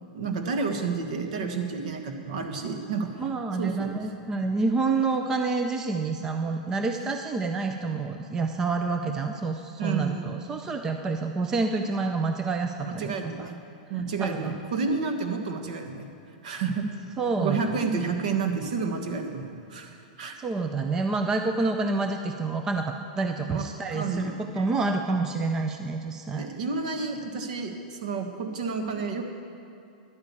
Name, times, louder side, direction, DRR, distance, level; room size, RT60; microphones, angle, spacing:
voice 1, 0.1-3.1 3.6-3.9 9.8-10.2 12.8-13.6 13.9-16.1 16.4-16.9 17.4-20.4 23.5-23.6 23.9-24.6 26.4-29.2, right 4 dB, 60° right, 5 dB, 1.6 m, -30 dB
voice 2, 3.2-13.5 14.2-14.6 17.2-17.8 20.4-26.5, right 3 dB, 10° right, 5 dB, 0.4 m, -28 dB
11.0 x 8.8 x 8.4 m, 2.6 s
supercardioid pair, 165°, 5 cm